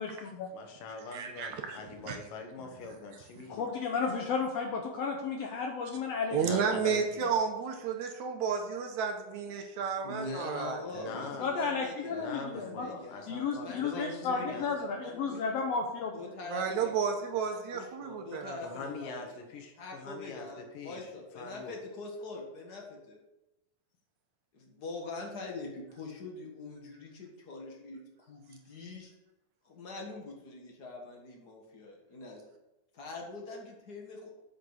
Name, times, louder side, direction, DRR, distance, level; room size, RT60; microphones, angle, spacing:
voice 1, 0.0-0.5 3.5-6.4 11.4-12.9 13.3-16.3, left 5 dB, 70° left, 2 dB, 1.6 m, -33 dB
voice 2, 0.5-3.7 6.4-7.3 10.9-11.4 12.1-14.7 18.6-21.1 21.4-21.8, left 3 dB, 90° left, 4 dB, 3.0 m, -43 dB
voice 3, 1.1-1.8 2.1-2.2 6.3-11.1 16.5-18.8, right 6 dB, 70° right, 5 dB, 2.1 m, -32 dB
voice 4, 9.9-15.8 16.1-19.4 19.8-23.2 24.5-29.1 29.6-32.4 32.9-34.3, left 3 dB, 40° left, 0 dB, 1.6 m, -44 dB
8.3 x 5.9 x 6.5 m, 0.98 s
omnidirectional pair, 3.7 m